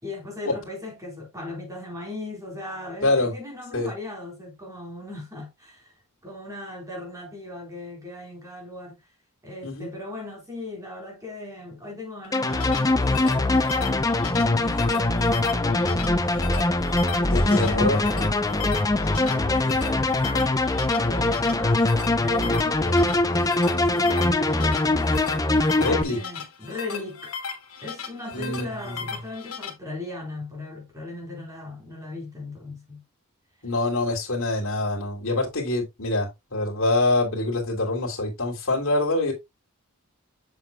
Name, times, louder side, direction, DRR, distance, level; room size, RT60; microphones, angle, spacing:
voice 1, 0.0-5.9 6.2-8.9 9.4-16.0 17.1-20.7 21.0-22.8 23.4-25.0 26.1-27.4 27.8-33.0, left 2 dB, 15° right, 3.9 m, -38 dB
voice 2, 3.0-3.3 3.7-3.9 9.6-9.9 17.2-18.0 25.8-26.2 28.3-29.1 33.6-39.3, left 2 dB, 65° left, 3.0 m, -25 dB
sound 1, 12.2-29.7, left 6 dB, 85° left, 2.5 m, -37 dB
sound 2, 12.3-26.0, left 2 dB, 15° left, 0.6 m, -22 dB
7.5 x 6.9 x 2.3 m
head